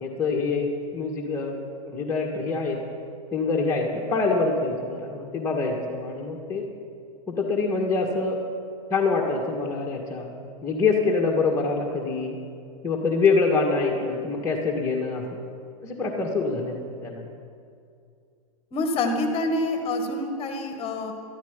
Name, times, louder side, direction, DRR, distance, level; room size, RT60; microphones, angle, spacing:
voice 1, 0.0-1.6 1.9-2.8 3.3-6.6 7.3-8.4 8.9-10.3 10.6-12.4 12.8-15.3 15.8-17.3, left 4 dB, 15° left, -1 dB, 1.8 m, -25 dB
voice 2, 18.7-21.1, left 2 dB, 30° left, 4 dB, 2.0 m, -26 dB
14.5 x 13.0 x 5.3 m, 2.3 s
hypercardioid pair, 120°, 18 cm